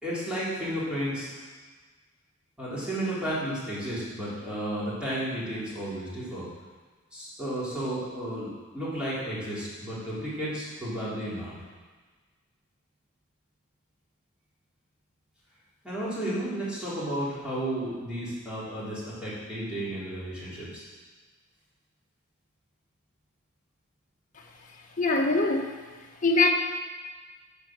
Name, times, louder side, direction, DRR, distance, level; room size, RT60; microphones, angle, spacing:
voice 1, 0.0-1.3 2.6-6.5 7.1-11.5 15.8-20.8, right 1 dB, 5° right, -9 dB, 3.6 m, -33 dB
voice 2, 25.0-25.8 26.2-26.5, left 3 dB, 35° left, -1 dB, 1.3 m, -22 dB
11.0 x 5.3 x 7.6 m, 1.4 s
head